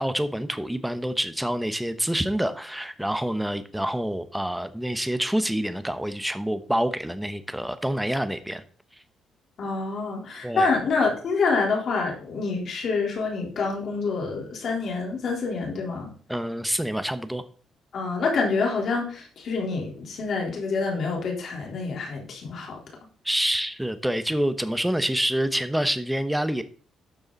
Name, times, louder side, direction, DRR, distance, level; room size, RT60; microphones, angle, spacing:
voice 1, 0.0-8.6 10.4-10.7 16.3-17.4 23.2-26.6, equal, 5° right, 11 dB, 1.1 m, -27 dB
voice 2, 9.6-16.1 17.9-22.8, left 4 dB, 60° left, 0 dB, 3.9 m, -27 dB
12.5 x 7.0 x 4.1 m, 0.43 s
cardioid pair, 90°, 0 cm